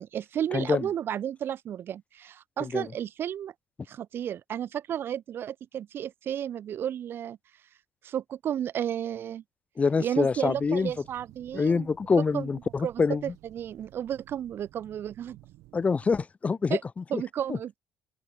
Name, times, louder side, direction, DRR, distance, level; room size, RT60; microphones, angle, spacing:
voice 1, 0.0-3.5 3.9-7.4 8.0-9.4 10.0-11.9 12.3-12.5 12.8-15.4 16.7-16.8 17.1-17.8, right 10 dB, 45° right, 0.4 m, -33 dB
voice 2, 0.5-0.9 2.6-2.9 9.8-10.9 11.5-13.2 15.7-17.2 17.5-17.6, left 5 dB, 25° left, 0.4 m, -26 dB
sound 1, 10.4-16.3, right 18 dB, 65° right, 2.9 m, -54 dB
open air
hypercardioid pair, 55°, 5 cm